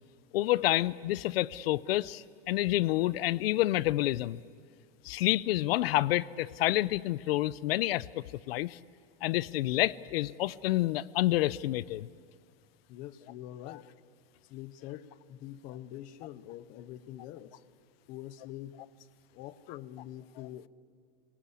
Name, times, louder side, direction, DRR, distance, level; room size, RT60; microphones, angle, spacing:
voice 1, 0.3-4.4 5.0-8.1 8.5-8.8 9.2-12.1, left 16 dB, 85° left, 20 dB, 0.6 m, -28 dB
voice 2, 12.9-13.9 14.4-17.6 18.1-19.1 19.3-20.7, left 12 dB, 30° left, 15 dB, 0.7 m, -45 dB
26.0 x 18.5 x 8.4 m, 2.2 s
supercardioid pair, 180°, 29 cm